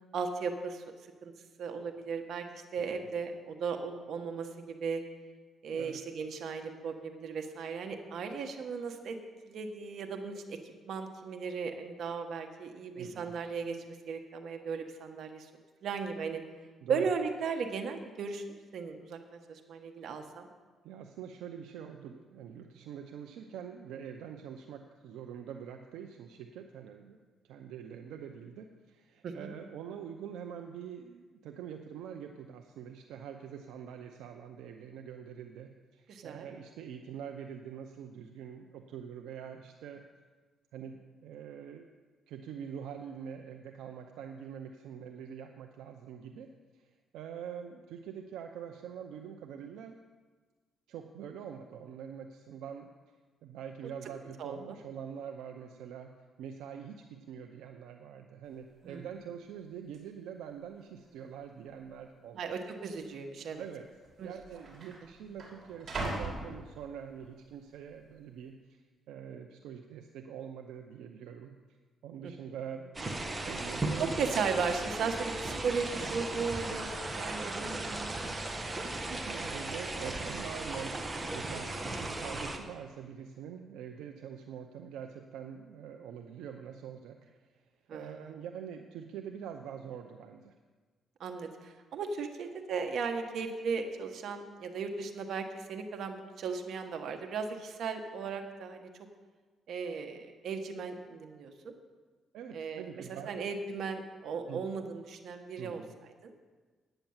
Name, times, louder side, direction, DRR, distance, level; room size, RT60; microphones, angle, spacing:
voice 1, 0.1-0.8 1.2-1.3 1.6-5.0 5.6-9.2 9.4-15.5 15.8-16.4 16.9-20.5 29.2-29.5 36.1-36.5 54.4-54.8 58.8-59.1 62.3-63.6 64.2-64.3 72.2-72.3 74.0-76.9 77.1-78.4 78.7-78.8 87.9-88.3 91.2-98.9 99.7-101.7 102.5-102.9 103.3-105.8 106.2-106.3, right 5 dB, 65° right, 5 dB, 1.3 m, -36 dB
voice 2, 2.8-3.1 5.7-6.0 12.9-13.4 16.8-17.1 20.8-27.2 27.4-40.0 40.7-41.9 42.3-46.9 47.1-50.0 50.9-52.9 53.4-56.1 56.4-62.5 63.6-63.9 64.2-68.8 69.1-71.5 72.0-74.1 79.1-81.0 81.3-87.2 87.4-87.6 87.9-90.5 102.3-103.4 104.5-104.6 105.6-105.9, right 8 dB, 90° right, 4 dB, 0.6 m, -44 dB
sound 1, 58.5-58.6 58.8-59.2 59.9-60.0 60.8-61.3 61.6-61.7 62.5-62.7 63.7-63.8 64.0-67.3 67.7-68.2, right 2 dB, 45° right, 3.3 m, -41 dB
sound 2, 72.9-82.6, right 2 dB, 25° right, 1.3 m, -36 dB
9.0 x 9.0 x 7.3 m, 1.4 s
cardioid pair, 90°, 0 cm